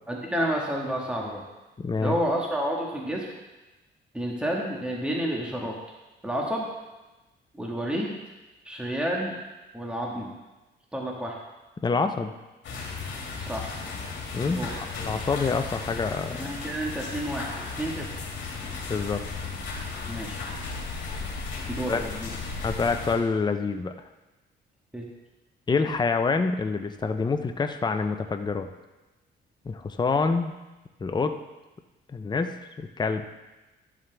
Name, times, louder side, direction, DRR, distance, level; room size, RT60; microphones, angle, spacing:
voice 1, 0.1-1.4 2.0-3.3 4.1-5.8 6.2-6.7 7.5-8.1 8.6-9.3 9.7-10.3 10.9-11.3 13.4-13.7 14.5-14.8 16.4-17.5 17.8-18.2 20.1-20.4 21.7-22.3 24.9-25.0, right 1 dB, 5° right, -2 dB, 1.6 m, -30 dB
voice 2, 1.8-2.2 11.8-12.3 14.3-14.7 15.0-16.5 18.9-19.2 21.9-22.0 22.6-23.9 25.7-28.7 29.7-30.5 31.0-31.4 32.1-32.5 32.8-33.2, left 4 dB, 20° left, 7 dB, 0.7 m, -26 dB
sound 1, 12.6-23.2, left 4 dB, 70° left, 2.5 m, -35 dB
12.5 x 7.3 x 3.4 m, 1.1 s
cardioid pair, 90°, 20 cm